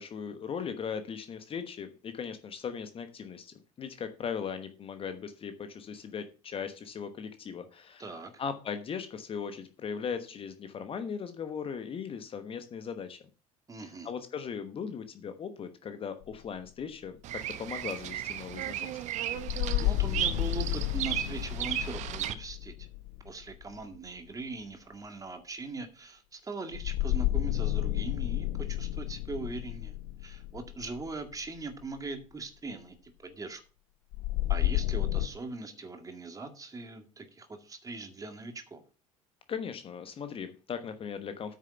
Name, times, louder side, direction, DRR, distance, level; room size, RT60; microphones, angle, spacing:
voice 1, 0.0-8.1 8.4-13.2 13.8-19.0 39.5-41.5, left 6 dB, 30° left, 9 dB, 1.2 m, -38 dB
voice 2, 8.0-8.4 13.7-14.1 19.8-22.9 23.2-29.9 30.2-33.6 34.5-38.8, right 3 dB, 20° right, 7 dB, 2.0 m, -41 dB
sound 1, 16.2-16.4 19.4-24.1 26.7-31.8 34.1-35.3, left 16 dB, 55° left, 0.8 m, -31 dB
Bird vocalization bird call bird song, 17.2-22.3, right 11 dB, 45° right, 0.8 m, -35 dB
9.0 x 6.6 x 5.8 m, 0.34 s
figure-of-eight pair, 65°, 18 cm